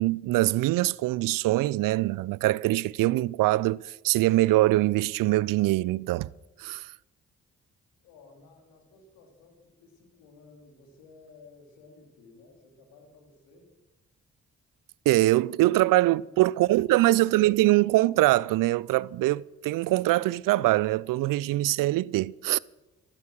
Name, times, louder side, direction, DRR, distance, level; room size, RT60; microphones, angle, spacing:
voice 1, 0.0-6.3 6.6-6.9 15.1-22.6, right 17 dB, 70° right, 0.5 m, -23 dB
voice 2, 8.0-13.7 16.2-16.9 17.2-17.4, left 3 dB, 85° left, 2.9 m, -55 dB
12.5 x 12.5 x 6.3 m
hypercardioid pair, 40°, 34 cm